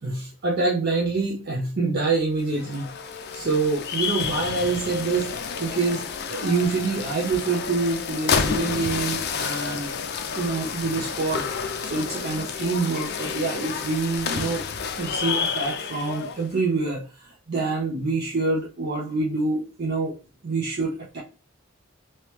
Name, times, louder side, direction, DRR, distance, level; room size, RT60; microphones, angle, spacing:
voice 1, 0.0-2.9 3.3-9.9 10.3-11.5 11.8-14.6 15.0-20.2 20.4-21.2, right 3 dB, 50° right, -2 dB, 0.6 m, -26 dB
sound 1, 2.4-16.5, left 6 dB, 55° left, 0.4 m, -30 dB
3.1 x 2.9 x 3.1 m, 0.34 s
head